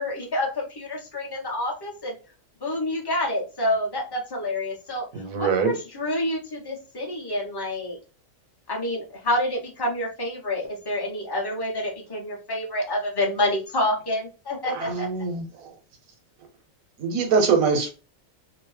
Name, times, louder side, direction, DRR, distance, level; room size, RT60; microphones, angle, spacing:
voice 1, 0.0-2.2 2.6-5.1 5.3-8.0 8.7-15.1, left 1 dB, 25° left, 0.5 m, -28 dB
voice 2, 5.1-5.8 14.7-15.7 17.0-17.9, right 5 dB, 90° right, 1.1 m, -23 dB
2.7 x 2.1 x 3.1 m
omnidirectional pair, 1.4 m